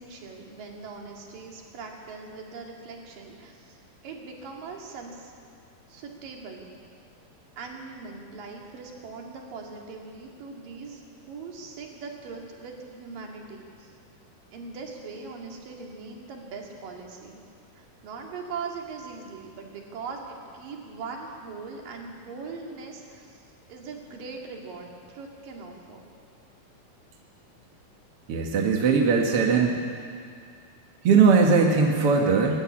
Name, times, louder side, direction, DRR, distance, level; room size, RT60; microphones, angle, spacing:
voice 1, 0.0-3.8 4.0-5.3 5.9-6.7 7.6-13.9 14.5-17.4 17.8-26.1, right 4 dB, 70° right, 1 dB, 3.9 m, -40 dB
voice 2, 28.3-29.8 31.0-32.6, right 5 dB, 55° right, 1 dB, 1.9 m, -20 dB
21.0 x 13.0 x 9.9 m, 2.3 s
omnidirectional pair, 4.1 m